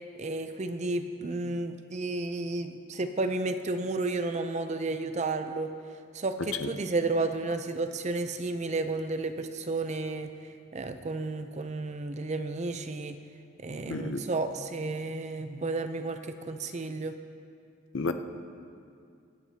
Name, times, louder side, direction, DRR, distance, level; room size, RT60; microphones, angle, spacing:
voice 1, 0.2-5.7 6.1-10.3 10.7-13.2 13.6-17.2, right 3 dB, 35° right, 8 dB, 0.5 m, -32 dB
voice 2, 13.9-14.2 17.9-18.1, left 3 dB, 70° left, 8 dB, 0.6 m, -30 dB
22.5 x 9.5 x 2.8 m, 2.4 s
head